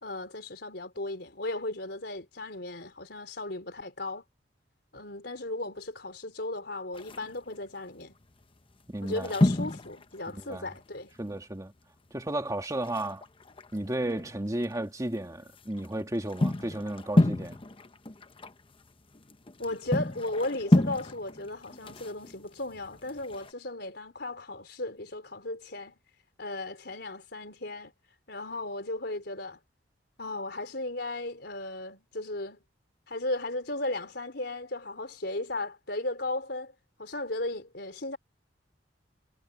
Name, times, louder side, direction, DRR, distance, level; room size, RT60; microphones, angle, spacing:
voice 1, 0.0-4.2 4.9-8.1 9.0-11.1 19.6-25.9 26.4-27.9 28.3-29.6 30.2-32.6 33.1-36.7 37.0-38.2, left 2 dB, 65° left, 4.5 m, -36 dB
sound 1, 6.9-7.5 8.2-8.4 8.7-11.4 11.7-11.8 12.1-12.2 12.6-14.7 15.2-23.5, left 1 dB, 30° left, 0.9 m, -30 dB
voice 2, 8.9-9.3 10.3-10.7 11.2-11.7 12.1-13.2 13.7-17.6, right 1 dB, 20° right, 1.9 m, -33 dB
head